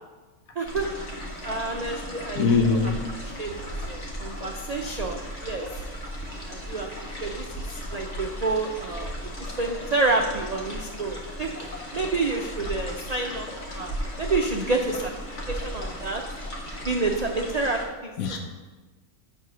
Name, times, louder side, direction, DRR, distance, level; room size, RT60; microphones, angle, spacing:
sound 1, 0.6-17.8, equal, 55° left, 1.7 m, -36 dB
voice 1, 0.6-0.9 1.4-2.9 3.2-5.8 6.5-6.9 7.2-7.6 7.9-9.1 9.6-13.5 13.7-15.1 15.5-16.2 16.9-18.1, right 3 dB, 70° right, 2 dB, 0.3 m, -29 dB
voice 2, 2.4-3.0 18.2-18.4, left 4 dB, 80° left, 3 dB, 1.1 m, -22 dB
9.3 x 3.5 x 6.0 m, 1.3 s
omnidirectional pair, 1.5 m